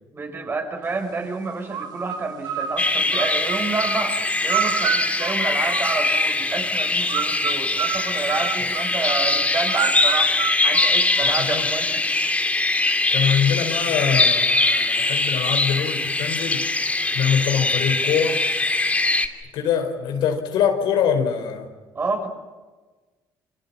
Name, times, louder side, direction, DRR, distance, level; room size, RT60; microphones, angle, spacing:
voice 1, 0.1-10.4 10.6-12.0 21.9-22.3, right 3 dB, 30° right, 5 dB, 5.9 m, -29 dB
sound 1, 1.7-6.4 7.1-11.5, right 8 dB, 70° right, 2.5 m, -29 dB
sound 2, 2.8-19.3, left 2 dB, 15° left, 2.8 m, -22 dB
voice 2, 11.2-11.6 13.1-18.4 19.5-21.7, left 7 dB, 80° left, 5 dB, 5.0 m, -24 dB
29.5 x 25.0 x 7.4 m, 1.3 s
cardioid pair, 105°, 8 cm